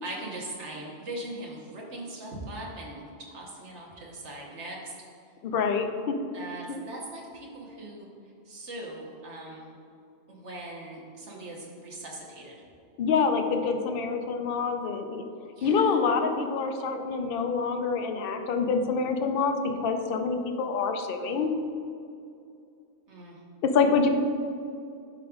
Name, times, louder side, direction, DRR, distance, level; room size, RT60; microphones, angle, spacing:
voice 1, 0.0-4.9 6.3-8.1 8.4-9.7 10.3-12.6 13.6-13.7 15.6-16.0 23.1-23.4, right 1 dB, 85° right, -3 dB, 1.4 m, -40 dB
voice 2, 5.4-6.2 6.7-6.8 13.0-15.2 15.6-21.5 23.6-24.1, left 5 dB, 60° left, 6 dB, 0.7 m, -26 dB
11.0 x 5.0 x 2.4 m, 2.5 s
omnidirectional pair, 1.1 m